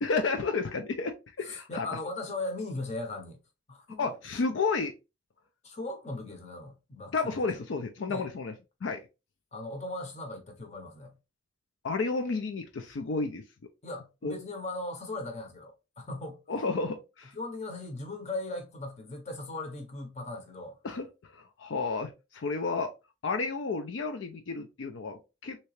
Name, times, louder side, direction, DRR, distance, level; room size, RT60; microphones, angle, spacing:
voice 1, 0.0-1.9 4.0-4.9 7.1-8.5 8.8-9.0 11.8-13.4 14.2-14.3 16.5-17.3 20.8-21.1 21.3-22.9 23.2-25.6, left 4 dB, 70° left, 0.4 m, -31 dB
voice 2, 1.4-3.4 3.7-4.2 5.6-7.6 8.1-8.3 9.5-11.1 13.8-16.4 17.3-20.8, left 2 dB, 35° left, 0.8 m, -38 dB
3.2 x 2.8 x 3.1 m
head